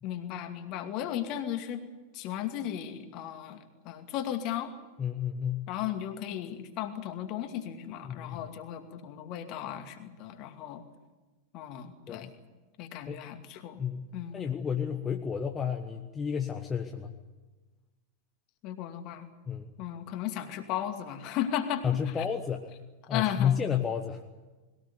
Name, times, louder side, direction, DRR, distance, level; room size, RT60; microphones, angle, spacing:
voice 1, 0.0-1.8 2.1-4.7 5.7-10.8 11.5-12.3 12.8-13.8 14.1-14.4 18.6-19.3 19.8-22.3 23.1-23.6, left 11 dB, 40° left, 6 dB, 2.4 m, -35 dB
voice 2, 5.0-5.7 8.0-8.4 12.1-12.3 13.1-13.2 13.8-17.1 19.5-19.7 21.8-22.7 23.1-24.2, left 8 dB, 20° left, 4 dB, 1.3 m, -31 dB
21.5 x 18.0 x 9.8 m, 1.2 s
figure-of-eight pair, 90°, 0 cm